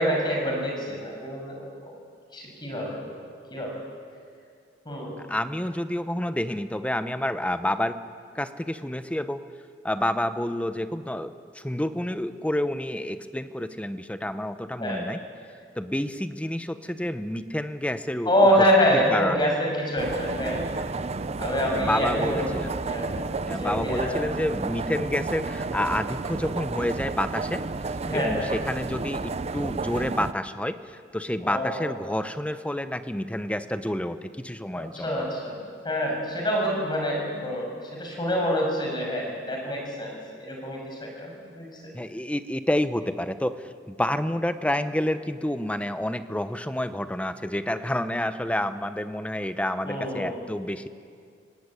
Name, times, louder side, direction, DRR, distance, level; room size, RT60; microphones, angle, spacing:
voice 1, 0.0-1.9 2.3-3.2 3.5-3.7 4.8-5.1 14.8-15.0 18.2-20.6 21.4-24.3 28.0-28.5 31.4-31.9 34.7-41.9 49.8-50.3, equal, 25° left, 0 dB, 6.7 m, -26 dB
voice 2, 5.2-8.0 8.3-9.4 9.8-15.2 15.7-18.7 18.9-19.5 21.7-22.7 23.4-35.3 41.9-50.9, left 1 dB, 5° left, 10 dB, 0.9 m, -29 dB
sound 1, 20.0-30.3, right 3 dB, 35° right, 0.6 m, -31 dB
25.0 x 17.5 x 9.9 m, 2.2 s
head